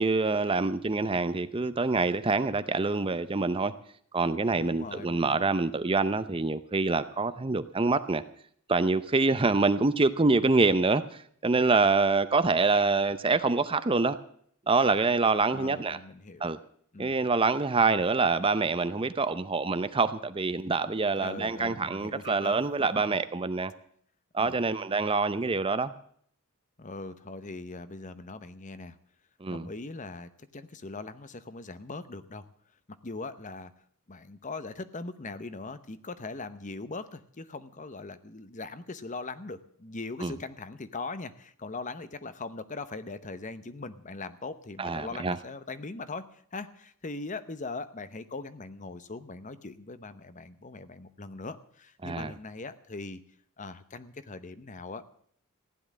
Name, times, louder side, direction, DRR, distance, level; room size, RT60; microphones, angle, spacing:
voice 1, 0.0-3.7 4.1-8.2 8.7-14.2 14.7-16.0 16.4-16.6 17.0-23.7 24.3-25.9 29.4-29.7 40.2-40.3 44.8-45.4 52.0-52.3, right 3 dB, 25° right, 13 dB, 0.6 m, -26 dB
voice 2, 4.6-5.5 15.5-16.5 16.9-17.1 21.2-22.7 24.4-24.6 26.8-29.0 29.5-32.5 33.0-33.7 34.1-53.2 53.6-55.1, left 3 dB, 35° left, 13 dB, 0.9 m, -40 dB
15.5 x 10.5 x 7.5 m, 0.62 s
head